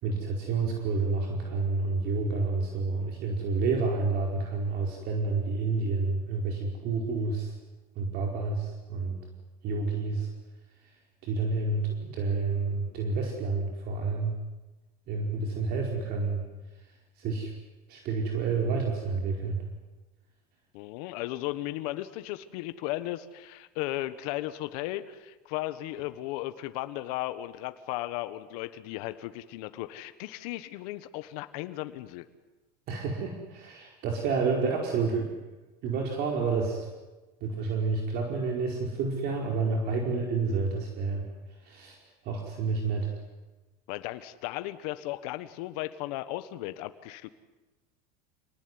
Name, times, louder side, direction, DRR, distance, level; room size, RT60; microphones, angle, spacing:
voice 1, 0.0-7.5 7.9-9.2 9.6-10.3 10.8-10.9 11.2-14.4 15.1-16.4 17.2-17.5 17.9-19.6 32.9-35.3 35.8-36.9 37.4-41.3 41.6-42.0 42.2-43.1, right 4 dB, 55° right, 1 dB, 4.8 m, -29 dB
voice 2, 20.7-32.3 43.9-47.3, left 16 dB, 75° left, 10 dB, 1.5 m, -36 dB
28.0 x 19.5 x 9.8 m, 1.2 s
supercardioid pair, 120°, 20 cm